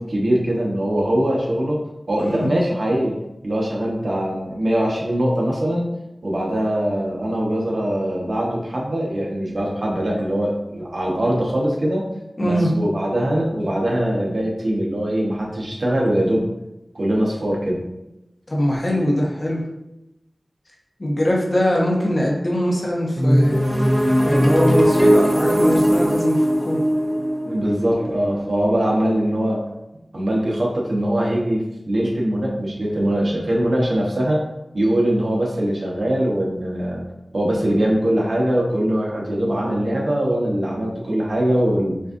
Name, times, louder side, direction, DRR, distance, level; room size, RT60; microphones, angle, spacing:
voice 1, 0.0-1.8 2.1-3.2 3.4-5.9 6.2-12.0 12.4-16.5 16.9-17.9 27.4-29.6 30.1-34.4 34.7-37.0 37.3-42.0, right 1 dB, 65° right, -3 dB, 1.1 m, -22 dB
voice 2, 12.4-12.7 18.5-19.6 21.0-23.6 24.2-26.8, equal, 45° left, -3 dB, 1.1 m, -22 dB
sound 1, 23.2-28.9, equal, 10° right, 0.6 m, -18 dB
6.2 x 2.6 x 2.6 m, 0.92 s
wide cardioid pair, 60°, 0 cm